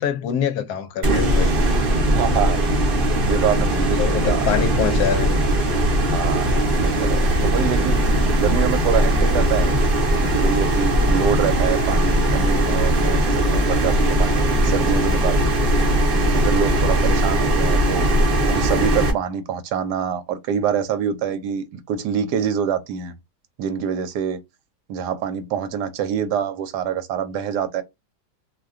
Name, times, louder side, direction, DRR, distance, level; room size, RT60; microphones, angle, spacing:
voice 1, 0.0-1.5 3.9-5.4, left 8 dB, 75° left, 1.1 m, -24 dB
sound 1, 1.0-19.1, right 1 dB, 45° right, 0.7 m, -19 dB
voice 2, 2.1-2.6 3.2-4.4 6.1-8.0 8.4-9.7 10.2-15.5 16.3-18.1 18.5-23.1 23.6-24.4 24.9-27.8, right 8 dB, 85° right, 1.2 m, -25 dB
2.7 x 2.2 x 3.5 m
omnidirectional pair, 1.7 m